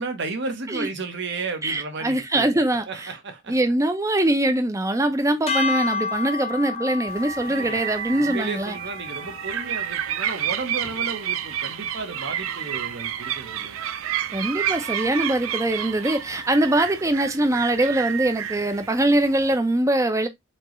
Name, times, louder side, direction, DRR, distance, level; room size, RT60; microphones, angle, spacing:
voice 1, 0.0-2.5 2.7-3.6 7.4-13.8, right 3 dB, 60° right, 1.0 m, -33 dB
voice 2, 1.6-3.1 3.5-8.8 14.3-20.3, right 1 dB, 15° right, 0.6 m, -22 dB
sound 1, 5.5-11.8, left 4 dB, 30° left, 0.5 m, -32 dB
sound 2, 7.1-19.6, right 10 dB, 80° right, 0.5 m, -30 dB
4.4 x 3.0 x 3.0 m
head